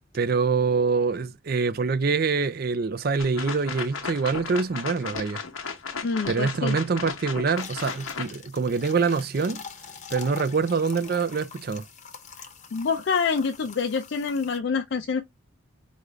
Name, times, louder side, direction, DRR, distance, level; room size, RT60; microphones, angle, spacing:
voice 1, 0.1-5.4 6.3-9.6 10.1-11.9, right 4 dB, 50° right, 0.4 m, -25 dB
sound 1, 3.2-8.3, left 5 dB, 90° left, 0.8 m, -35 dB
voice 2, 6.0-6.8 12.4-15.2, left 5 dB, 60° left, 0.4 m, -27 dB
sound 2, 7.5-14.6, left 6 dB, 35° left, 0.8 m, -44 dB
5.1 x 2.4 x 3.1 m
head